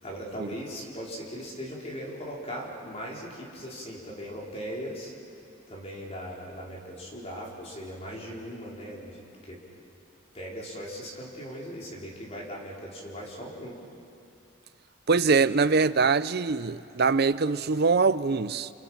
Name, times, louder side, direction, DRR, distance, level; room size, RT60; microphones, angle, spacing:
voice 1, 0.0-5.1 5.7-9.6 10.3-13.8, equal, 30° left, 4.4 m, -39 dB
voice 2, 15.1-18.7, right 4 dB, 50° right, 0.6 m, -23 dB
30.0 x 28.5 x 5.8 m
head